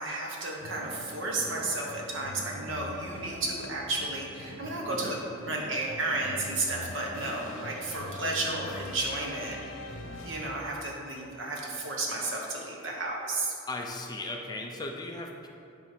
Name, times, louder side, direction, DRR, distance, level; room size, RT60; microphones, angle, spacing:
voice 1, 0.0-9.6 10.2-13.5, right 2 dB, 70° right, -1 dB, 1.4 m, -33 dB
sound 1, 0.6-11.0, left 1 dB, 90° left, 0.9 m, -43 dB
voice 2, 4.9-5.2 13.7-15.5, left 2 dB, 20° left, 1 dB, 0.6 m, -37 dB
9.5 x 3.4 x 6.1 m, 2.8 s
head